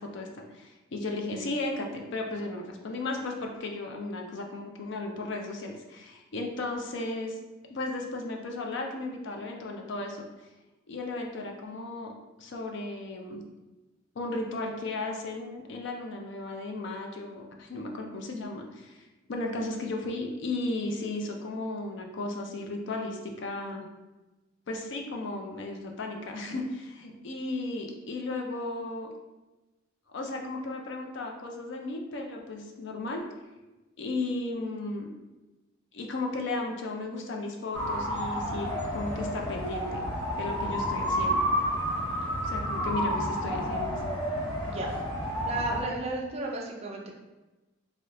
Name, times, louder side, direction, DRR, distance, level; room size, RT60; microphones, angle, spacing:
voice 1, 0.0-7.4 7.7-10.2 10.9-12.1 12.4-13.4 14.2-23.9 24.7-29.1 30.1-33.2 34.0-35.1 35.9-40.0 40.3-41.4 42.4-44.0, left 2 dB, 60° left, 2 dB, 0.5 m, -35 dB
sound 1, 37.7-45.8, equal, 10° left, 0.8 m, -30 dB
voice 2, 45.4-47.1, right 2 dB, 30° right, 0 dB, 0.4 m, -34 dB
3.2 x 2.8 x 2.6 m, 1.1 s
head